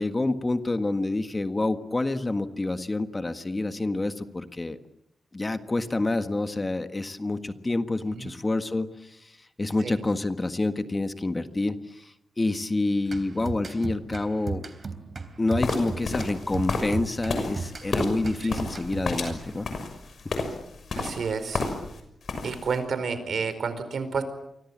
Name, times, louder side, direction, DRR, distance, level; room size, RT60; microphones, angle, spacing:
voice 1, 0.0-4.8 5.3-9.3 9.6-14.6 15.4-19.7 20.2-20.3, left 2 dB, 25° left, 9 dB, 1.6 m, -28 dB
sound 1, 13.1-19.7, right 4 dB, 45° right, 3.5 m, -37 dB
sound 2, 15.6-22.0 22.2-22.8, left 3 dB, 65° left, 6.3 m, -31 dB
voice 2, 20.9-21.7 22.4-24.2, right 5 dB, 70° right, 11 dB, 4.7 m, -30 dB
30.0 x 25.0 x 7.5 m, 0.81 s
wide cardioid pair, 105°, 0 cm